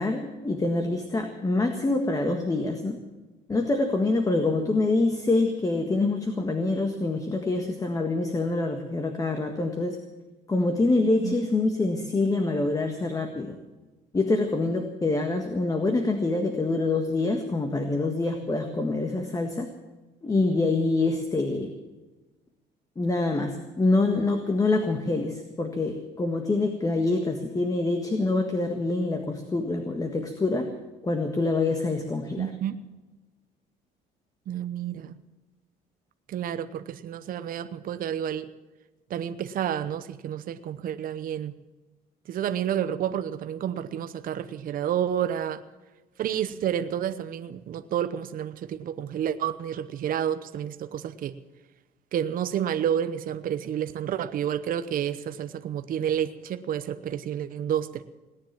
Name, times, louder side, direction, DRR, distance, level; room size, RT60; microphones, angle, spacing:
voice 1, 0.0-3.0 3.5-10.0 10.5-13.6 14.1-19.7 20.2-21.7 23.0-30.7 31.0-32.5, left 2 dB, 20° left, 5 dB, 1.6 m, -25 dB
voice 2, 32.4-32.8 34.5-35.2 36.3-38.5 39.1-41.5 42.3-45.6 46.2-51.3 52.1-58.0, right 9 dB, 55° right, 11 dB, 0.9 m, -30 dB
18.0 x 10.0 x 7.5 m, 1.2 s
cardioid pair, 110°, 17 cm